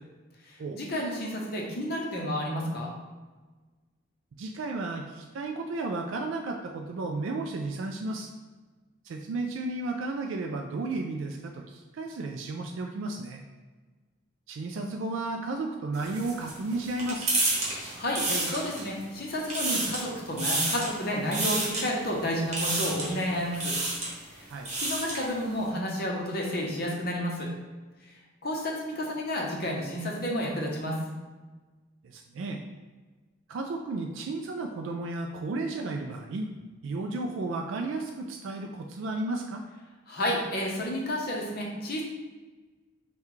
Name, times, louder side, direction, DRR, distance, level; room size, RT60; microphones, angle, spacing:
voice 1, 0.5-2.9 17.9-23.7 24.3-27.5 28.4-31.0 40.1-42.0, left 1 dB, 45° left, -1 dB, 0.8 m, -31 dB
voice 2, 4.4-8.3 9.0-13.4 14.5-17.4 24.5-24.7 32.0-32.6 33.5-36.5 36.8-39.6, right 2 dB, 70° right, 3 dB, 0.3 m, -33 dB
sound 1, 15.9-19.0 19.3-20.1 20.4-20.9 21.3-21.8 22.5-23.1 23.5-24.1 24.5-25.3, right 2 dB, 35° right, 1.0 m, -29 dB
5.6 x 2.3 x 3.1 m, 1.3 s
head